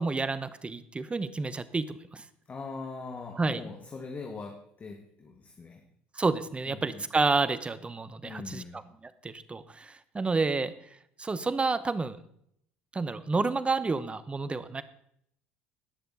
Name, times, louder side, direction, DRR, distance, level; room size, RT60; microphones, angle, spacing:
voice 1, 0.0-2.2 3.4-3.6 6.2-10.7 11.2-12.2 12.9-14.8, right 3 dB, 20° right, 15 dB, 0.9 m, -30 dB
voice 2, 2.5-5.8 6.7-7.0 8.2-8.8, left 4 dB, 30° left, 2 dB, 1.8 m, -41 dB
19.0 x 6.8 x 4.0 m, 0.69 s
hypercardioid pair, 75°, 5 cm